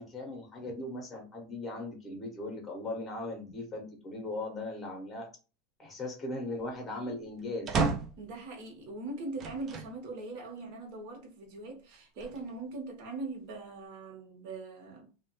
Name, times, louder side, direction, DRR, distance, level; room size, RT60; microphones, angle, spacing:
voice 1, 0.0-5.3 5.8-7.8, left 2 dB, 10° left, 0.8 m, -38 dB
sound 1, 7.7-8.3 9.4-9.9 10.6-10.7 11.9-12.7, right 4 dB, 25° right, 0.3 m, -32 dB
voice 2, 8.2-15.3, right 3 dB, 50° right, 1.0 m, -41 dB
3.1 x 2.1 x 2.9 m
supercardioid pair, 175°, 0 cm